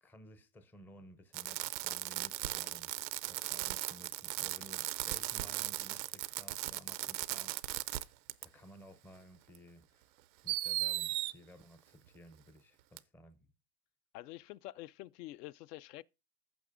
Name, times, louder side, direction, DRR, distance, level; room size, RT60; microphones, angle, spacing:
voice 1, 0.0-2.9 3.3-8.1 8.4-10.1 10.4-13.4, equal, 5° left, 0.4 m, -56 dB
Fireworks, 1.3-8.0 8.3-8.5 9.5-9.6 10.5-11.3 13.0-13.1, right 17 dB, 90° right, 0.7 m, -37 dB
voice 2, 14.1-16.0, left 17 dB, 70° left, 0.6 m, -47 dB
15.0 x 6.1 x 2.5 m
supercardioid pair, 130°, 50 cm